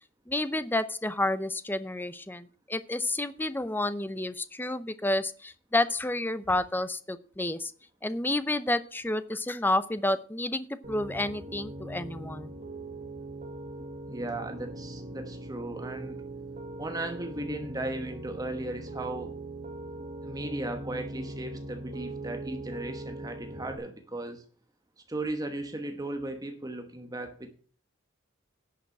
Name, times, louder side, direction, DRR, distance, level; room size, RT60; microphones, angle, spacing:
voice 1, 0.3-7.7 8.0-12.5, left 1 dB, 10° left, 13 dB, 0.6 m, -30 dB
Piano, 10.8-23.8, right 2 dB, 35° right, 1.7 m, -41 dB
voice 2, 14.1-16.2 16.8-19.4 20.2-24.4 25.1-27.5, right 2 dB, 20° right, 6 dB, 1.1 m, -36 dB
11.0 x 5.9 x 7.7 m, 0.42 s
head